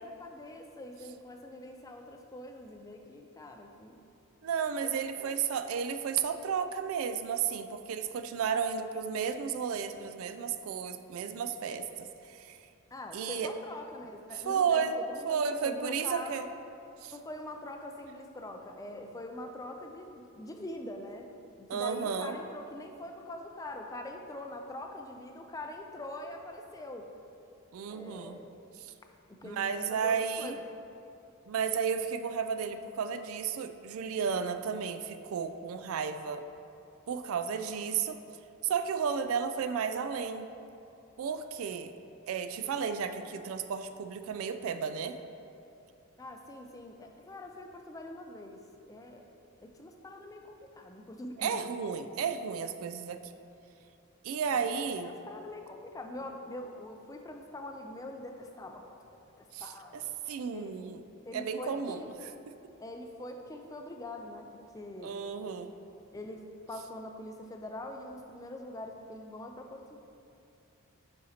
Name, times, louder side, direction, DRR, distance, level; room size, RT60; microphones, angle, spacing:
voice 1, 0.0-4.0 4.8-5.4 12.9-14.8 15.1-16.5 17.1-21.3 21.7-27.1 27.9-28.5 29.3-30.6 46.2-48.6 48.9-49.2 49.6-51.6 54.4-54.7 55.0-60.1 60.5-60.7 61.2-62.1 62.8-65.1 66.1-70.0, left 1 dB, 15° left, 4 dB, 0.3 m, -44 dB
voice 2, 4.4-12.6 13.1-13.5 14.5-15.0 15.3-16.5 17.0-17.1 21.7-22.4 27.7-28.4 29.4-30.6 31.5-36.4 37.1-38.2 38.6-40.5 41.2-41.9 42.3-45.2 51.4-53.3 54.2-55.1 59.5-61.0 61.3-62.0 65.0-65.7, right 6 dB, 75° right, 9 dB, 0.3 m, -33 dB
9.7 x 4.2 x 2.8 m, 2.6 s
head